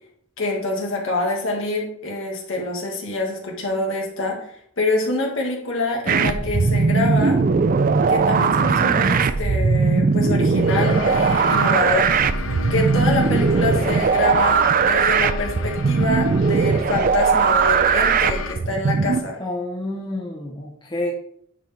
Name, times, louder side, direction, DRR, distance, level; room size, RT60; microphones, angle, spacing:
voice 1, 0.4-4.4 4.8-7.4 8.1-12.3 12.7-19.4, left 2 dB, 70° left, -1 dB, 1.9 m, -26 dB
sound 1, 6.1-19.2, right 5 dB, 45° right, 0.4 m, -19 dB
sound 2, 10.7-18.5, left 3 dB, 90° left, 0.8 m, -32 dB
voice 2, 19.4-21.2, left 1 dB, 25° left, -2 dB, 1.0 m, -29 dB
9.8 x 4.6 x 3.4 m, 0.68 s
head